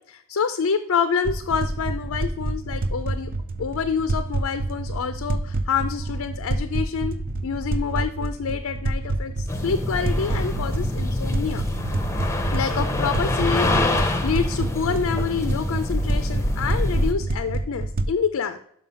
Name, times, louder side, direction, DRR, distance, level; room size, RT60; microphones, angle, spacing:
voice 1, 0.1-3.3 3.6-7.2 7.4-11.7 12.5-18.6, left 6 dB, 70° left, 9 dB, 0.4 m, -27 dB
sound 1, 1.2-18.1, right 2 dB, 45° right, 0.5 m, -28 dB
sound 2, 9.5-17.1, left 2 dB, 15° left, 0.7 m, -25 dB
5.7 x 5.6 x 5.4 m, 0.68 s
head